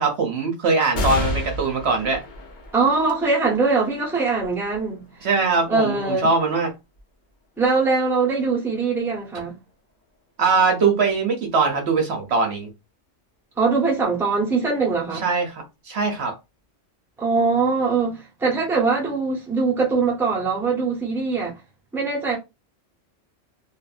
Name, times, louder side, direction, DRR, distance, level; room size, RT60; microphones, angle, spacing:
voice 1, 0.0-2.2 5.2-6.7 10.4-12.7 15.2-16.4, right 4 dB, 60° right, 0.9 m, -21 dB
sound 1, 0.9-7.8 8.4-8.5 9.7-10.2, left 2 dB, 45° left, 0.9 m, -33 dB
voice 2, 2.7-5.3 5.7-6.3 7.6-9.6 13.6-15.2 17.2-21.5 21.9-22.4, right 4 dB, ahead, 0.8 m, -22 dB
2.6 x 2.5 x 2.4 m
omnidirectional pair, 1.3 m